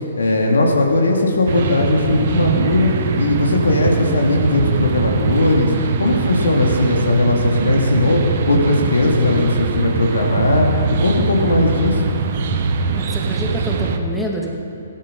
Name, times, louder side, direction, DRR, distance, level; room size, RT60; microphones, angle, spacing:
voice 1, 0.1-2.9 3.2-5.7 6.0-8.2 8.5-10.7 11.0-12.0, left 2 dB, 75° left, 0 dB, 2.6 m, -18 dB
sound 1, 1.5-14.0, right 5 dB, 50° right, 1.2 m, -21 dB
voice 2, 12.9-14.5, equal, 5° left, -2 dB, 2.0 m, -27 dB
16.5 x 11.5 x 5.4 m, 2.5 s
figure-of-eight pair, 125°, 0 cm